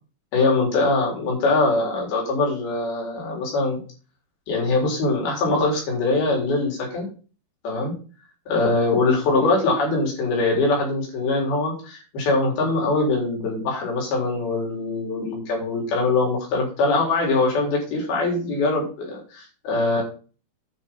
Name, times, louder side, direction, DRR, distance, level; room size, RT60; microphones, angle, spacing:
voice 1, 0.3-3.8 4.5-7.1 7.6-7.9 8.5-20.0, left 3 dB, 70° left, -1 dB, 5.9 m, -22 dB
10.0 x 5.8 x 5.6 m, 0.36 s
omnidirectional pair, 4.5 m